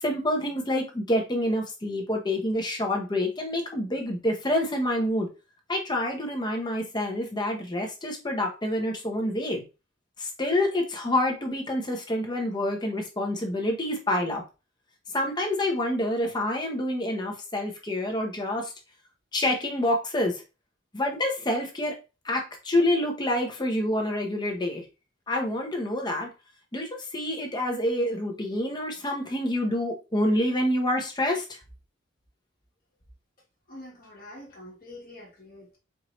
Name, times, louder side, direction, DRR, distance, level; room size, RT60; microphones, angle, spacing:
voice 1, 0.0-5.3 5.7-9.6 10.2-14.4 15.1-18.7 19.3-20.3 20.9-21.9 22.2-24.8 25.3-26.3 26.7-31.4, left 1 dB, 20° left, 0.9 m, -27 dB
voice 2, 33.7-35.8, left 1 dB, 45° left, 1.4 m, -45 dB
4.6 x 2.6 x 3.1 m
head